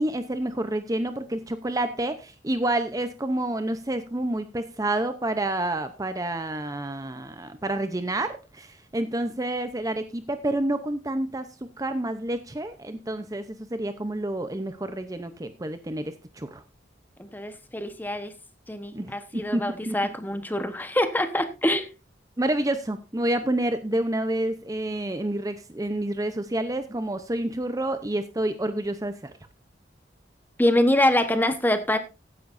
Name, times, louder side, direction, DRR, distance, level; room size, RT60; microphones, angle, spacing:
voice 1, 0.0-11.5 11.8-16.6 18.9-20.0 22.4-29.3, right 1 dB, 20° right, 9 dB, 0.7 m, -29 dB
voice 2, 17.2-18.3 18.7-21.9 30.6-32.0, left 1 dB, 10° left, 9 dB, 1.1 m, -24 dB
15.0 x 10.5 x 2.6 m, 0.29 s
head